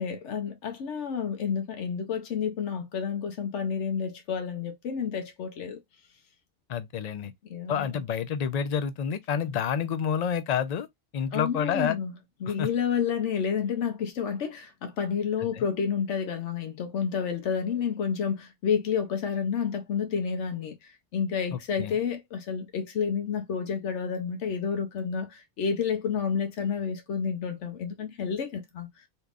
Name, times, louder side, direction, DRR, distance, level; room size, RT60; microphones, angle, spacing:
voice 1, 0.0-5.8 7.2-7.9 11.3-12.1 12.4-29.0, left 7 dB, 80° left, 1.0 m, -30 dB
voice 2, 6.7-7.3 7.7-10.9 11.1-12.0 12.5-12.7 15.4-15.6 21.5-21.9, left 7 dB, 55° left, 0.4 m, -29 dB
3.6 x 2.9 x 2.4 m
omnidirectional pair, 1.2 m